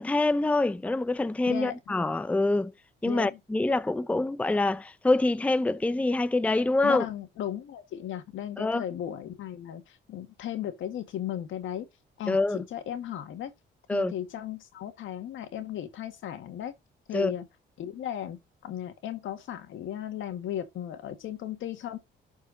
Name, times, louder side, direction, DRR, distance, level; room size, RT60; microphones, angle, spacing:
voice 1, 0.0-2.7 3.0-7.1 8.6-8.8 12.3-12.6 13.9-14.1 17.1-17.3, left 2 dB, 5° left, 0.5 m, -25 dB
voice 2, 1.5-1.8 3.1-3.4 6.8-11.9 12.2-13.5 13.9-16.7 17.1-17.5 17.8-22.0, left 11 dB, 80° left, 1.9 m, -36 dB
12.0 x 4.7 x 4.0 m
cardioid pair, 90°, 20 cm